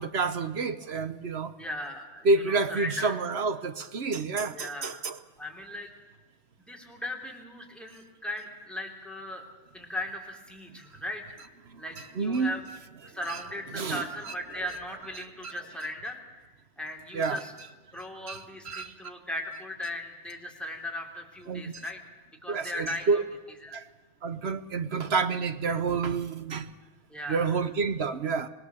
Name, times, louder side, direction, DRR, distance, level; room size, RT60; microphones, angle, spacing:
voice 1, 0.0-1.5 2.2-5.2 12.2-12.6 13.3-13.4 13.7-14.0 15.4-15.5 17.1-17.4 18.3-18.4 18.6-18.9 21.5-21.6 22.5-23.2 23.7-23.8 24.2-26.7 27.3-28.5, right 4 dB, 50° right, 1.1 m, -28 dB
voice 2, 1.6-3.1 4.5-5.0 5.4-5.9 6.6-11.2 11.8-12.6 13.0-16.2 16.8-17.5 17.9-22.0 22.4-23.2 23.6-23.7 27.1-27.5, left 1 dB, ahead, 3.3 m, -38 dB
25.5 x 20.0 x 7.0 m
omnidirectional pair, 1.5 m